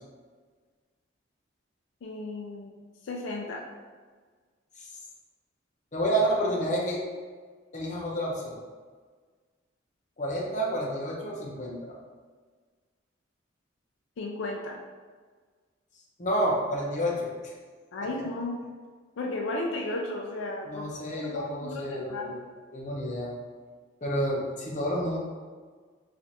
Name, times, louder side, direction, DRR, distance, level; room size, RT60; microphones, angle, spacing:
voice 1, 2.0-2.7 3.0-3.6 14.2-14.8 17.9-18.6 19.2-20.9 21.2-22.3, left 2 dB, 75° left, 0 dB, 0.4 m, -34 dB
voice 2, 5.9-7.0 7.7-8.6 10.2-11.8 16.2-17.5 20.6-22.4 22.7-23.3 24.0-25.2, right 1 dB, 35° left, -4 dB, 0.6 m, -29 dB
4.3 x 2.5 x 2.6 m, 1.5 s
head